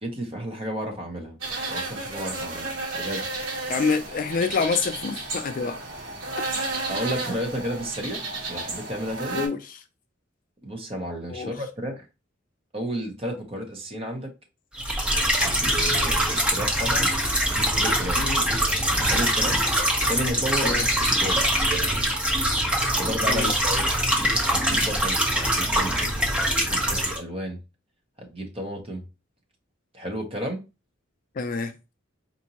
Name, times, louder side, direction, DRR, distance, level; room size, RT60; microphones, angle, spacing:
voice 1, 0.0-1.4 1.7-3.2 6.9-9.4 10.6-12.1 12.7-14.3 15.4-17.1 17.5-18.2 19.1-19.6 20.1-20.8 21.1-21.4 22.8-23.9 24.5-26.1 26.5-27.6 28.2-29.0 29.9-30.6, equal, 30° right, 0.9 m, -32 dB
sound 1, 1.4-9.5, right 2 dB, 75° right, 1.3 m, -32 dB
voice 2, 3.7-5.8 6.5-6.6 9.3-9.8 11.3-11.5 18.2-18.4 20.6-20.9 23.3-23.5 31.4-31.7, left 5 dB, 40° left, 0.3 m, -27 dB
sound 2, 14.8-27.2, equal, 5° right, 0.7 m, -23 dB
4.3 x 2.6 x 2.8 m
head